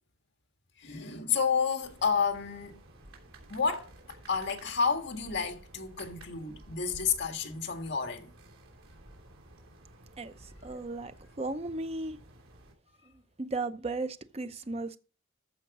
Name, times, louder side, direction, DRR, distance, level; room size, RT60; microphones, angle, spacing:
voice 1, 0.8-2.8 3.5-3.9 4.3-8.3, left 6 dB, 55° left, 1.7 m, -30 dB
sound 1, 1.8-12.7, right 2 dB, 80° right, 3.1 m, -53 dB
voice 2, 10.6-12.2 13.4-15.0, right 2 dB, 30° right, 0.6 m, -35 dB
14.0 x 5.1 x 4.8 m
head